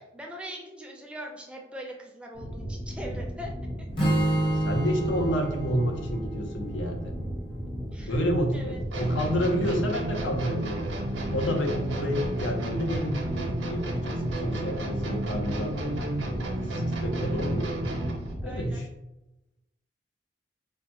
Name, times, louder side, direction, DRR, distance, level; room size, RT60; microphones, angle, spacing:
voice 1, 0.0-3.5 7.9-8.1 8.5-8.8 18.4-18.8, equal, 5° right, 0 dB, 0.4 m, -41 dB
sound 1, 2.3-18.8, equal, 45° left, 1.5 m, -36 dB
Strum, 4.0-8.1, right 1 dB, 25° left, 0.8 m, -29 dB
voice 2, 4.3-7.1 8.1-10.9 11.3-17.7 18.4-18.9, equal, 85° left, 3 dB, 0.6 m, -30 dB
sound 2, 8.9-18.3, right 1 dB, 80° right, 0.7 m, -32 dB
4.7 x 2.1 x 2.9 m, 0.94 s
head